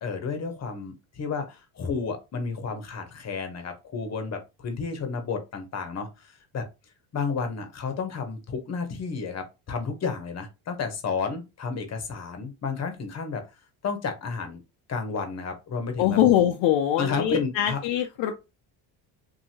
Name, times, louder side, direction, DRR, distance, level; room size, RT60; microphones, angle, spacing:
voice 1, 0.0-6.7 7.1-13.4 13.8-14.6 14.9-16.2 17.0-17.8, left 5 dB, 35° left, 0.9 m, -31 dB
voice 2, 16.0-18.3, left 11 dB, 70° left, 0.5 m, -22 dB
2.7 x 2.6 x 2.8 m
supercardioid pair, 95°, 46 cm